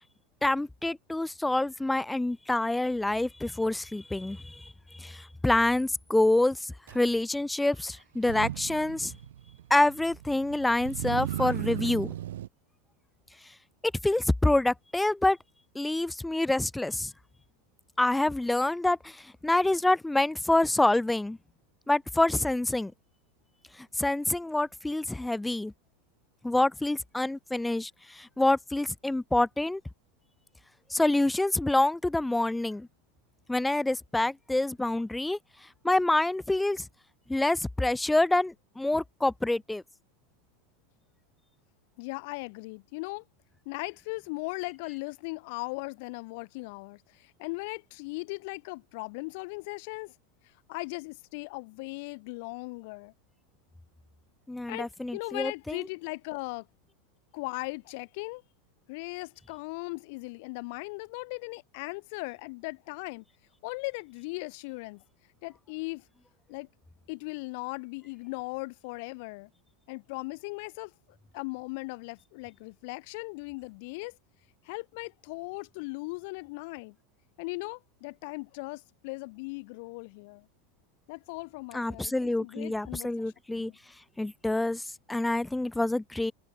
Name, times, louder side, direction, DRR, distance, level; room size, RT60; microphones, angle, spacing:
voice 1, 0.4-9.1 9.7-12.1 14.0-15.4 15.8-17.1 18.0-21.4 21.9-22.9 23.8-25.7 26.4-29.8 30.9-32.9 33.5-35.4 35.8-36.9 37.3-39.8 54.5-55.8 81.7-83.7 84.2-86.3, left 2 dB, 5° left, 0.4 m, -27 dB
Motor vehicle (road), 6.9-7.0 8.1-12.5, right 12 dB, 85° right, 1.5 m, -36 dB
voice 2, 42.0-43.2 43.7-50.1 50.7-53.1 54.7-56.7 57.3-58.4 58.9-63.2 63.6-65.0 65.4-66.0 66.5-66.7 67.1-69.5 69.9-70.9 71.3-74.2 74.6-77.0 77.4-80.5 81.1-83.8, left 28 dB, 65° left, 0.7 m, -38 dB
supercardioid pair, 120°, 0 cm